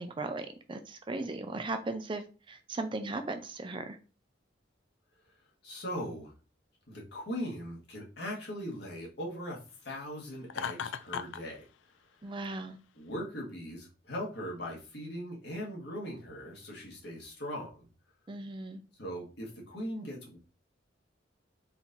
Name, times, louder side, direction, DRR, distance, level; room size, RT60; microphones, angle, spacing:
voice 1, 0.0-4.0 12.2-12.8 18.3-18.8, right 2 dB, 25° right, 7 dB, 0.4 m, -37 dB
voice 2, 5.6-6.3 6.9-9.6 9.8-11.6 12.9-17.9 19.0-20.4, equal, 65° left, -2 dB, 1.7 m, -39 dB
Laughter, 10.5-11.4, left 7 dB, 85° left, 0.3 m, -36 dB
4.4 x 2.8 x 3.9 m, 0.33 s
head